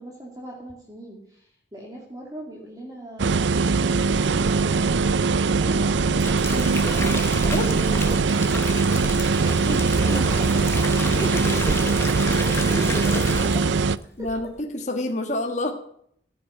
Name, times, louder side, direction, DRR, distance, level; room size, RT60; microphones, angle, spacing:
voice 1, 0.0-8.9 9.4-14.3, right 1 dB, 20° right, -2 dB, 2.5 m, -39 dB
sound 1, 3.2-14.0, right 4 dB, 70° right, 0.5 m, -21 dB
sound 2, 5.9-13.9 14.2-14.6, left 2 dB, 15° left, 1.2 m, -32 dB
voice 2, 7.5-7.8 11.2-11.3 14.2-14.5 14.7-15.7, left 1 dB, 40° left, 3 dB, 1.5 m, -27 dB
15.5 x 7.7 x 9.3 m, 0.68 s
head